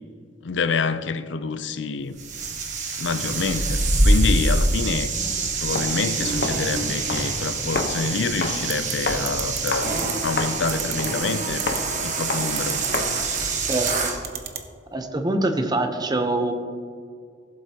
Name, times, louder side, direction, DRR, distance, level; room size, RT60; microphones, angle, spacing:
voice 1, 0.4-2.2 3.0-5.1 5.6-9.9 10.2-11.6 12.0-12.8, left 4 dB, 80° left, 0.5 m, -27 dB
sound 1, 2.2-14.2, right 2 dB, 40° right, 1.2 m, -25 dB
Walk footsteps, 5.7-13.3, left 2 dB, 60° left, 0.9 m, -32 dB
sound 2, 8.7-8.9 9.3-9.7 10.0-10.1 10.7-11.1 11.6-11.8 12.6-13.0 13.7-13.9 14.2-14.6, right 10 dB, 60° right, 0.9 m, -31 dB
voice 2, 14.9-16.5, right 2 dB, 20° right, 0.8 m, -24 dB
15.5 x 7.7 x 2.9 m
head